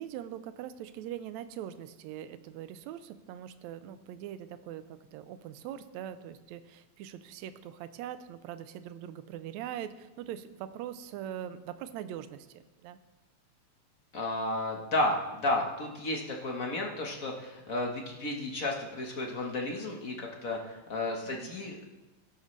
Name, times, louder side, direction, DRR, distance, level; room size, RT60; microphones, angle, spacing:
voice 1, 0.0-13.0 21.3-21.6, right 10 dB, 80° right, 12 dB, 1.9 m, -42 dB
voice 2, 14.1-21.8, left 2 dB, 50° left, 1 dB, 1.0 m, -33 dB
17.0 x 11.5 x 3.3 m, 1.1 s
omnidirectional pair, 3.3 m